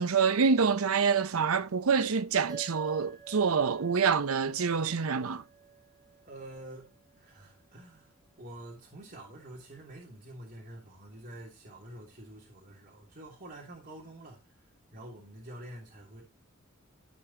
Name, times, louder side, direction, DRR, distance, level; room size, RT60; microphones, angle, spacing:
voice 1, 0.0-5.4, right 5 dB, 80° right, 0.7 m, -26 dB
sound 1, 2.5-7.2, right 7 dB, 20° right, 3.2 m, -49 dB
voice 2, 6.2-6.9 7.2-14.4 14.9-16.2, right 1 dB, 40° right, 3.1 m, -47 dB
14.5 x 5.1 x 2.9 m
head